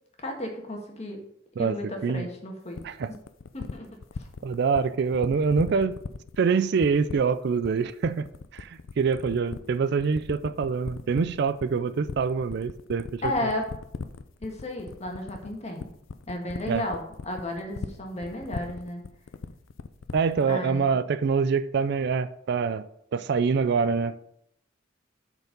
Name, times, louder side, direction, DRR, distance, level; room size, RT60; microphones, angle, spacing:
voice 1, 0.2-1.2 1.6-2.8 3.5-3.9 4.2-4.3 13.2-13.7 14.4-15.9 16.3-19.0 20.5-20.9, left 1 dB, 35° left, 2 dB, 1.5 m, -33 dB
voice 2, 1.6-2.3 2.8-3.1 4.4-6.0 6.4-8.2 8.5-13.3 16.7-16.8 20.1-22.8 23.1-24.3, right 5 dB, 55° right, 13 dB, 0.4 m, -25 dB
sound 1, 2.7-20.5, left 4 dB, 80° left, 0.5 m, -38 dB
8.0 x 4.5 x 5.2 m, 0.74 s
head